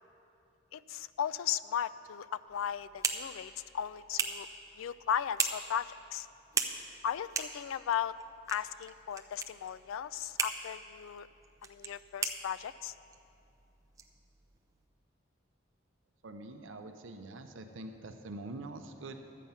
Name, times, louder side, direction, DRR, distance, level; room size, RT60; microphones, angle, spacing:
voice 1, 0.7-4.5 4.8-6.3 7.0-8.1 8.5-11.3 11.6-12.9, left 9 dB, 80° left, 16 dB, 0.3 m, -36 dB
sound 1, 2.5-14.9, right 5 dB, 15° right, 0.5 m, -40 dB
voice 2, 16.2-19.2, right 2 dB, 70° right, 6 dB, 0.6 m, -45 dB
12.0 x 8.3 x 5.6 m, 2.6 s
head